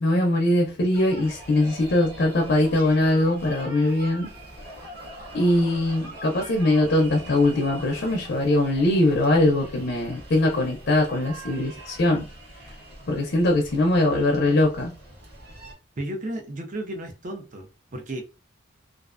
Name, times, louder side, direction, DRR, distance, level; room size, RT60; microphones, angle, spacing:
voice 1, 0.0-4.3 5.3-12.3 13.1-14.9, left 1 dB, 55° left, 0.5 m, -21 dB
sound 1, 0.9-15.7, right 1 dB, 55° right, 1.0 m, -43 dB
voice 2, 16.0-18.2, right 1 dB, 40° right, 0.5 m, -33 dB
2.4 x 2.1 x 2.4 m
head